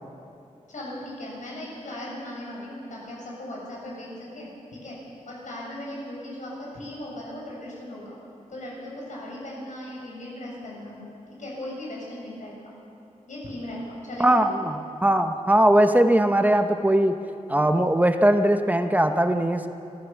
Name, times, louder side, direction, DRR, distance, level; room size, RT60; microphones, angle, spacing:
voice 1, 0.7-5.0 5.3-8.2 8.5-11.1 11.4-12.6 13.3-14.4, left 1 dB, 80° left, -3 dB, 7.2 m, -37 dB
voice 2, 14.2-17.2 17.5-19.7, right 1 dB, 15° right, 7 dB, 0.8 m, -20 dB
26.5 x 14.5 x 7.2 m, 2.7 s
wide cardioid pair, 140°, 13 cm